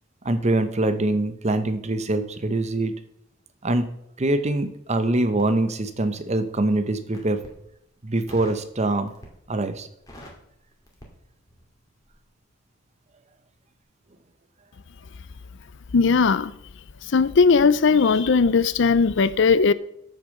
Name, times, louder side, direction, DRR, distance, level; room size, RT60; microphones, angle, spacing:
voice 1, 0.2-2.9 3.6-3.9 4.2-7.4 8.0-9.1 9.5-9.9, right 2 dB, 35° right, 0.9 m, -24 dB
Crackle, 5.3-6.5 7.0-7.6 8.3-8.7 9.1-9.5 9.8-11.8 12.0-12.2, equal, 20° left, 2.4 m, -46 dB
voice 2, 15.9-16.5 17.1-19.7, left 5 dB, 65° left, 0.5 m, -18 dB
8.4 x 7.2 x 6.5 m
head